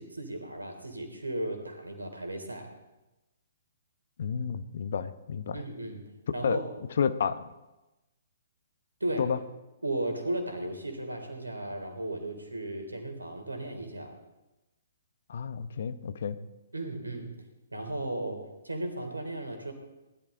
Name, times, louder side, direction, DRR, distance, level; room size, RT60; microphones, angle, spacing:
voice 1, 0.0-2.7 5.5-6.0 6.3-6.6 9.0-9.3 9.8-14.1 16.7-17.3 17.7-19.7, right 1 dB, 85° right, 4 dB, 3.2 m, -35 dB
voice 2, 4.2-5.6 6.4-6.6 7.0-7.5 9.2-9.4 15.3-16.4, left 7 dB, 55° left, 12 dB, 1.0 m, -30 dB
20.0 x 12.5 x 3.8 m, 1.0 s
figure-of-eight pair, 125°, 0 cm